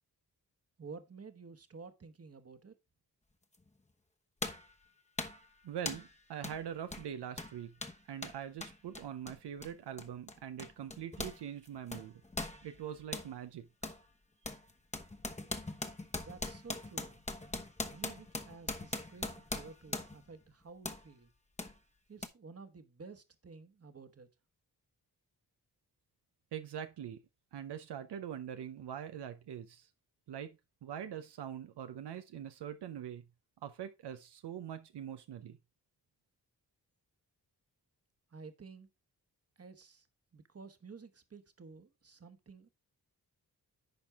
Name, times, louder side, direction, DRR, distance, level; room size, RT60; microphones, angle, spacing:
voice 1, 0.8-2.7 16.2-17.2 17.9-21.3 22.1-24.3 38.3-38.9 39.6-40.1 40.3-42.7, right 4 dB, 35° right, 1.2 m, -52 dB
sound 1, 3.5-3.7 4.4-4.7 5.2-5.5 5.9-6.1 6.4-6.6 6.9-11.4 11.7-13.3 13.8-14.0 14.4-20.3 20.8-21.0 21.6-21.7 22.2-22.3, left 2 dB, 15° left, 1.0 m, -41 dB
voice 2, 5.6-7.7 8.1-12.2 12.6-13.7 26.5-27.2 27.5-29.9 30.3-30.5 30.8-33.2 33.6-35.6, right 9 dB, 85° right, 0.7 m, -43 dB
10.5 x 4.4 x 3.5 m
cardioid pair, 55°, 40 cm